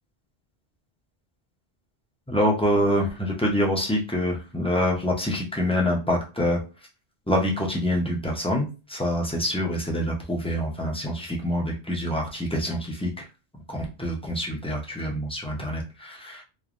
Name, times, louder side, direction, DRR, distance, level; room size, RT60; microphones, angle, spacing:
voice 1, 2.3-6.6 7.3-13.1 13.7-16.4, equal, 10° left, -2 dB, 0.4 m, -26 dB
3.1 x 2.1 x 2.4 m, 0.31 s
omnidirectional pair, 1.1 m